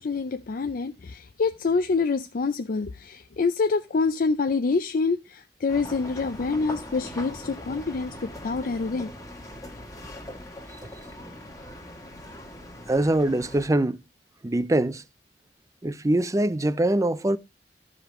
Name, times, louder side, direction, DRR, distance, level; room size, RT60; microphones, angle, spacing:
voice 1, 0.0-9.1, left 4 dB, 50° left, 0.5 m, -26 dB
sound 1, 5.7-13.7, left 1 dB, 20° left, 1.5 m, -41 dB
voice 2, 12.9-14.0 14.4-15.0 15.8-17.4, right 1 dB, 20° right, 0.5 m, -23 dB
14.5 x 4.9 x 3.0 m
head